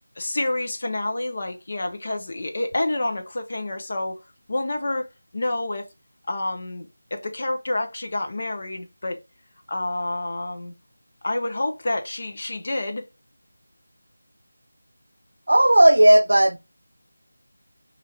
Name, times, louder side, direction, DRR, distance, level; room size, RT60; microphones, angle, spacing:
voice 1, 0.2-4.2 4.5-5.1 5.3-5.9 6.3-9.2 9.7-10.7 11.2-13.0, left 2 dB, 40° left, 0.6 m, -28 dB
voice 2, 15.5-16.6, right 1 dB, 80° right, 0.4 m, -14 dB
3.3 x 2.4 x 2.7 m
figure-of-eight pair, 175°, 0 cm